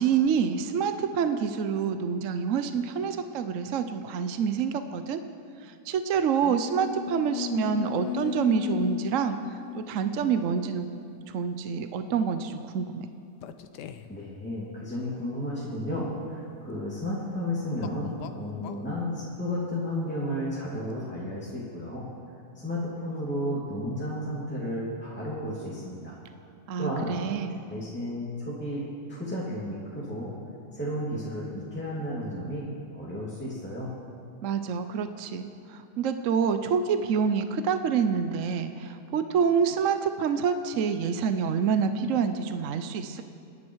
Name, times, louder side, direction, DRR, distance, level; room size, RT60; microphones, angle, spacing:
voice 1, 0.0-5.2 5.6-10.9 11.3-13.1 26.7-27.6 34.4-43.2, right 6 dB, 60° right, 9 dB, 0.9 m, -27 dB
sound 1, 6.4-10.4 11.3-11.5 13.4-14.2 17.8-18.9, left 10 dB, 85° left, 1.3 m, -36 dB
voice 2, 14.1-22.1 22.5-26.2 26.8-27.3 27.7-30.4 30.7-33.9, left 1 dB, 5° left, -7 dB, 2.4 m, -33 dB
27.0 x 10.5 x 4.7 m, 2.5 s
omnidirectional pair, 1.8 m